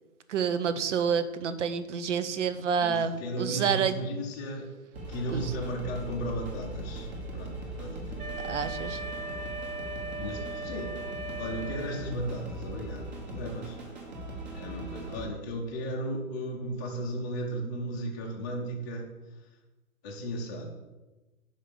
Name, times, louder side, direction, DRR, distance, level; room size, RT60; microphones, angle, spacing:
voice 1, 0.3-3.9 5.3-5.5 8.4-9.0, right 7 dB, 55° right, 12 dB, 0.7 m, -28 dB
voice 2, 2.8-4.7 5.1-8.4 10.2-10.9 11.4-13.8 14.5-19.5 20.0-20.9, right 1 dB, 15° left, -2 dB, 0.6 m, -35 dB
sound 1, 4.9-15.3, right 1 dB, 30° right, 1.3 m, -39 dB
Wind instrument woodwind instrument, 8.2-12.4, right 2 dB, 85° right, 1.2 m, -39 dB
5.4 x 5.2 x 6.6 m, 1.1 s
hypercardioid pair, 155°, 43 cm